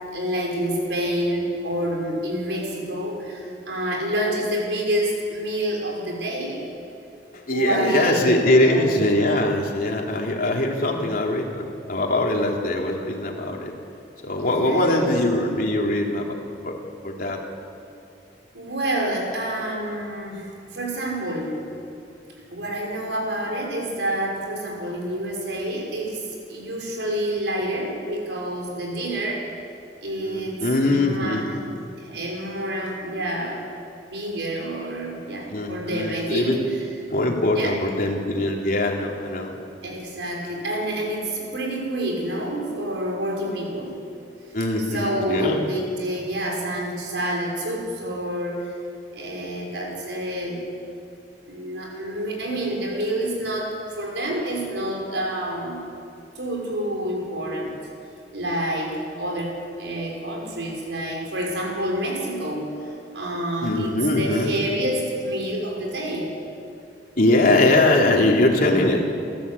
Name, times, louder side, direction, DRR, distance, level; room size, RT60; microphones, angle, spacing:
voice 1, 0.1-6.7 7.5-9.0 14.4-15.2 18.5-21.6 22.4-29.5 30.0-33.6 34.1-36.9 37.5-37.8 39.8-44.0 44.8-48.7 49.1-50.6 51.5-55.9 56.4-57.8 58.3-66.3, right 1 dB, 80° right, 0 dB, 5.9 m, -28 dB
voice 2, 7.5-13.7 14.2-16.3 16.6-16.7 17.0-17.4 30.2-31.4 35.5-36.6 37.1-39.5 44.5-45.6 63.6-64.5 67.2-69.0, left 1 dB, 50° left, 0 dB, 3.3 m, -21 dB
29.5 x 14.0 x 8.6 m, 2.5 s
head